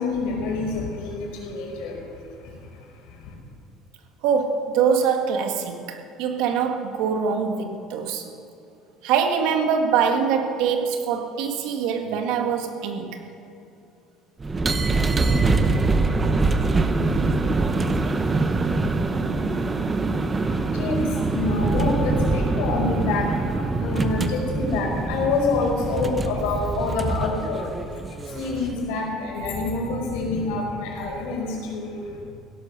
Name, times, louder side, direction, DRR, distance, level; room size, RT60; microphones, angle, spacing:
voice 1, 0.0-3.3 19.4-32.2, left 3 dB, 80° left, 0 dB, 4.6 m, -28 dB
voice 2, 4.2-8.2 9.0-13.2, right 6 dB, 70° right, 5 dB, 1.8 m, -23 dB
sound 1, 14.4-28.8, right 3 dB, 15° right, 0.8 m, -24 dB
16.5 x 12.0 x 6.7 m, 2.7 s
cardioid pair, 160°, 0 cm